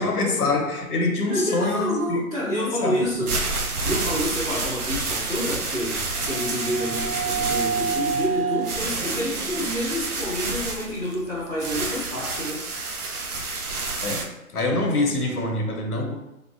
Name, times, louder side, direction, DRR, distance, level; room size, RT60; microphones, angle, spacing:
voice 1, 0.0-3.3 14.0-16.2, left 2 dB, 85° left, 2 dB, 0.8 m, -25 dB
voice 2, 1.3-3.3 3.8-12.6, equal, ahead, -14 dB, 1.2 m, -28 dB
sound 1, 3.0-14.2, right 3 dB, 85° right, 0.7 m, -29 dB
sound 2, 5.3-11.2, right 6 dB, 25° right, 0.8 m, -31 dB
3.1 x 2.4 x 2.4 m, 0.91 s
hypercardioid pair, 165°, 44 cm